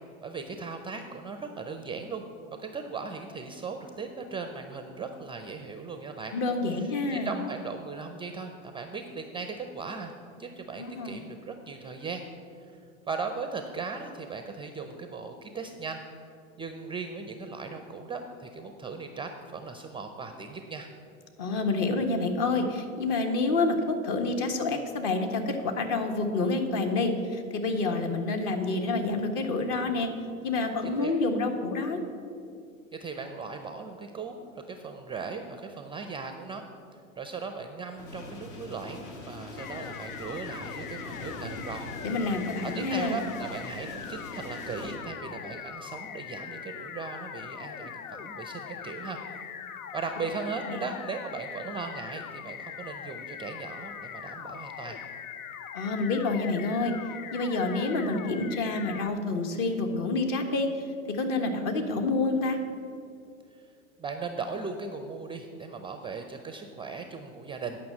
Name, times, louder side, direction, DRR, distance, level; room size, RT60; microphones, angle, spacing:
voice 1, 0.2-2.2 2.6-6.3 6.8-10.1 10.4-12.2 12.7-12.8 13.1-16.0 16.6-20.9 30.8-31.1 32.9-36.6 36.9-41.9 42.6-49.2 49.9-55.0 63.5-63.6 64.0-67.9, right 4 dB, 15° right, 6 dB, 0.4 m, -38 dB
voice 2, 6.3-7.3 10.8-11.2 21.4-30.1 30.4-32.0 42.0-43.2 50.7-50.8 55.7-56.9 57.3-60.8 61.1-62.6, left 3 dB, 45° left, 5 dB, 1.5 m, -28 dB
sound 1, 38.0-45.0, left 2 dB, 65° left, 1.9 m, -42 dB
sound 2, 39.6-59.1, left 8 dB, 85° left, 0.7 m, -41 dB
9.3 x 5.6 x 7.6 m, 2.4 s
hypercardioid pair, 95°, 42 cm